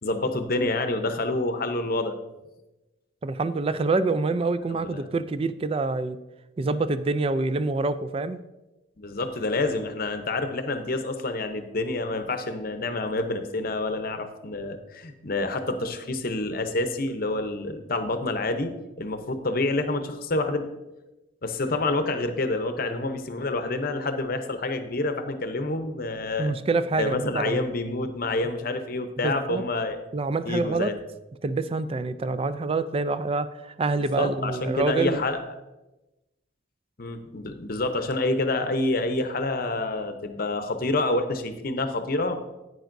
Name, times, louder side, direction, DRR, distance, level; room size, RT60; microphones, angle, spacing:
voice 1, 0.0-2.1 4.7-5.1 9.0-20.7 21.4-26.5 27.0-30.0 30.5-30.9 34.0-35.4 37.0-42.4, left 2 dB, 45° left, 8 dB, 0.7 m, -28 dB
voice 2, 3.2-6.2 6.6-8.4 26.4-27.6 29.2-29.6 30.1-30.9 31.4-35.2, right 3 dB, 30° right, 13 dB, 0.3 m, -26 dB
10.5 x 9.2 x 2.6 m, 1.0 s
head